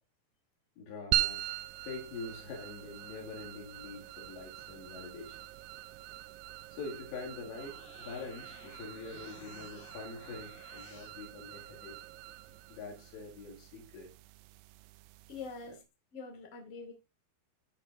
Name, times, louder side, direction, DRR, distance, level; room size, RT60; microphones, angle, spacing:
voice 1, 0.8-1.5 1.8-5.5 6.7-12.0 12.7-14.1, left 4 dB, 80° left, 4.3 m, -45 dB
sound 1, 1.1-15.8, right 15 dB, 85° right, 2.3 m, -41 dB
sound 2, 7.3-11.2, left 6 dB, 60° left, 2.9 m, -56 dB
voice 2, 15.3-15.8 16.1-16.9, left 4 dB, 25° left, 1.6 m, -44 dB
13.5 x 6.2 x 2.5 m
omnidirectional pair, 5.0 m